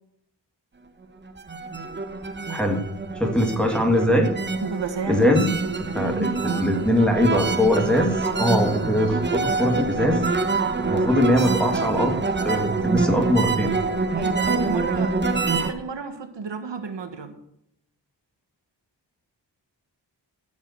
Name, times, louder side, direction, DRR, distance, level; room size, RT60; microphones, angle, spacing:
sound 1, 1.3-15.7, right 3 dB, 25° right, 0.9 m, -26 dB
voice 1, 2.5-2.9 3.2-4.3 5.1-5.5 5.8-10.2 10.8-12.2 12.4-13.7, equal, ahead, 2 dB, 1.9 m, -21 dB
voice 2, 4.6-5.3 5.6-6.8 14.1-17.3, right 5 dB, 75° right, 8 dB, 1.3 m, -32 dB
14.5 x 5.4 x 6.5 m, 0.75 s
wide cardioid pair, 100°, 44 cm